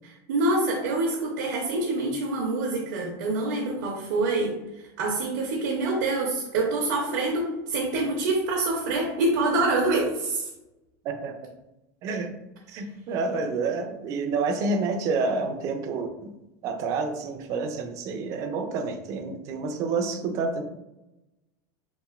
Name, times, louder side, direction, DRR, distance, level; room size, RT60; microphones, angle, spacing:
voice 1, 0.0-4.6 5.0-10.5, right 2 dB, 80° right, -2 dB, 0.6 m, -26 dB
voice 2, 12.0-12.3 12.7-16.3 16.6-20.6, right 4 dB, 35° right, 5 dB, 0.4 m, -29 dB
2.9 x 2.6 x 2.3 m, 0.97 s
supercardioid pair, 160°, 10 cm